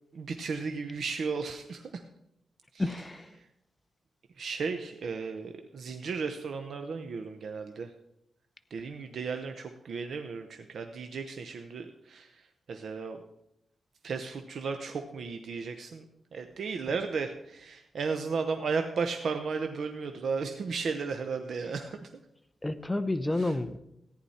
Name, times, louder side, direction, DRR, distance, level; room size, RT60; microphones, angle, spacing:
voice 1, 0.1-2.0 2.7-2.8 3.4-3.5 4.4-7.9 8.7-13.2 14.0-16.0 16.3-22.1 23.4-23.5, right 5 dB, 65° right, 6 dB, 0.8 m, -34 dB
voice 2, 2.8-3.4 22.6-23.8, left 2 dB, 10° left, 10 dB, 0.7 m, -30 dB
14.5 x 9.8 x 4.3 m, 0.80 s
wide cardioid pair, 120°, 0 cm